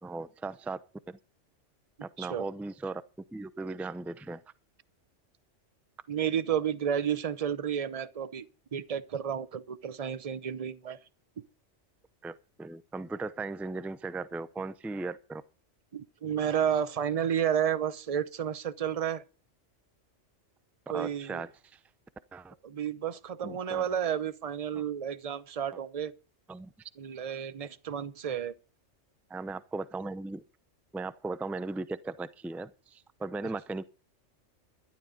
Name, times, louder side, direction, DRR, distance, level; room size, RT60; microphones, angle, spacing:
voice 1, 0.0-0.8 1.1-1.2 2.0-3.0 3.3-4.4 12.2-15.4 20.9-21.8 22.3-22.5 23.4-23.9 24.7-24.8 26.5-26.7 29.3-30.4 30.9-33.8, right 3 dB, ahead, 0.4 m, -37 dB
voice 2, 6.1-8.5 8.7-11.0 15.9-19.2 20.9-21.4 22.6-26.1 27.0-28.5, right 8 dB, 35° right, 0.8 m, -31 dB
12.5 x 11.5 x 5.2 m
omnidirectional pair, 1.2 m